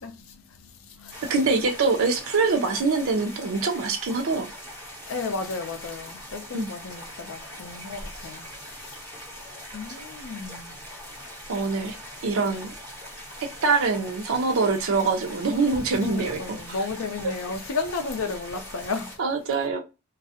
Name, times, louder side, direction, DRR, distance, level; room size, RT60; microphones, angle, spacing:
voice 1, 0.0-1.3 5.1-9.1 9.7-10.7 16.0-19.2, left 4 dB, 75° left, 0.5 m, -33 dB
sound 1, 1.1-19.2, equal, 20° right, 1.1 m, -41 dB
voice 2, 1.3-4.5 6.5-6.7 11.5-12.0 12.2-12.7 13.6-16.6 17.2-17.3 19.2-19.8, right 4 dB, 75° right, 0.5 m, -24 dB
2.3 x 2.0 x 2.7 m
head